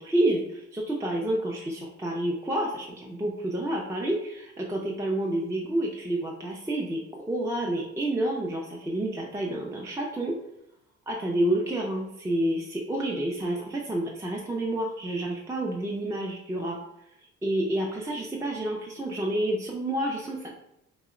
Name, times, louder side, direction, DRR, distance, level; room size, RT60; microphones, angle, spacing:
voice 1, 0.0-10.3 11.1-16.8 17.4-20.5, right 1 dB, 10° right, -2 dB, 0.4 m, -29 dB
2.8 x 2.0 x 3.6 m, 0.82 s
cardioid pair, 90°, 30 cm